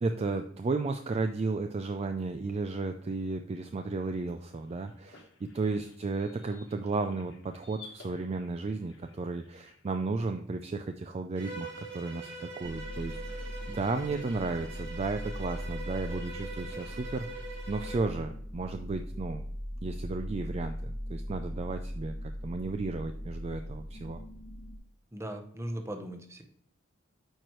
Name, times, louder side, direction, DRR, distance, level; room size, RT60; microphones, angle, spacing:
voice 1, 0.0-13.5 13.7-17.4 17.7-19.4 19.8-24.2, right 3 dB, 30° right, 6 dB, 0.3 m, -34 dB
sound 1, 4.4-9.9, left 4 dB, 65° left, 1.3 m, -56 dB
Bowed string instrument, 11.4-18.1, right 3 dB, 60° right, 2.7 m, -43 dB
sound 2, 12.6-24.8, equal, 15° left, 1.1 m, -40 dB
voice 2, 25.1-26.4, right 1 dB, 15° right, 5 dB, 0.8 m, -38 dB
9.0 x 4.6 x 3.0 m, 0.62 s
head